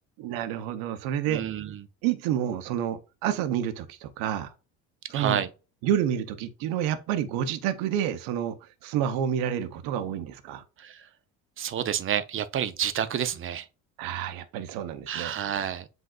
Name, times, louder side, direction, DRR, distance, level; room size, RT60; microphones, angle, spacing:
voice 1, 0.2-1.4 2.0-4.5 5.1-5.4 5.8-8.6 8.8-10.6 14.0-15.3, right 10 dB, 75° right, 0.8 m, -29 dB
voice 2, 1.3-1.8 5.1-5.5 10.8-11.1 11.6-13.7 15.1-15.9, right 9 dB, 35° right, 0.6 m, -29 dB
7.8 x 2.6 x 2.4 m
supercardioid pair, 80°, 35 cm